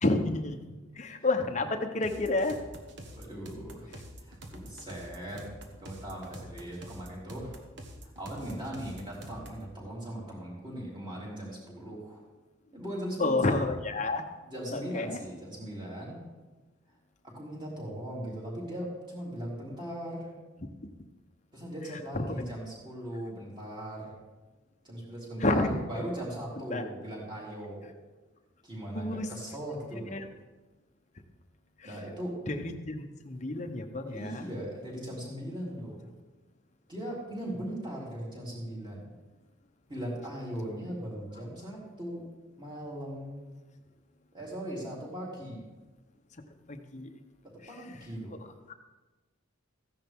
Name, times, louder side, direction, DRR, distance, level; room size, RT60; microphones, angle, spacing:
voice 1, 0.0-0.6 1.0-2.6 13.2-14.2 14.7-15.2 22.1-22.4 25.4-26.0 26.7-26.8 28.9-29.3 29.9-30.3 31.8-31.9 32.5-34.4 46.7-47.1 48.7-48.8, left 2 dB, 35° left, 6 dB, 0.8 m, -30 dB
sound 1, 2.0-9.7, equal, 55° right, 1.3 m, -46 dB
voice 2, 3.1-3.9 4.2-7.5 8.0-12.2 12.7-13.6 14.4-16.2 17.3-20.3 21.5-24.1 24.8-27.9 28.6-30.2 31.8-32.3 34.1-36.1 36.9-39.1 39.9-42.2 42.6-43.5 44.3-45.6 47.5-48.4, right 1 dB, 20° right, -5 dB, 3.5 m, -39 dB
14.5 x 10.5 x 3.6 m, 1.2 s
head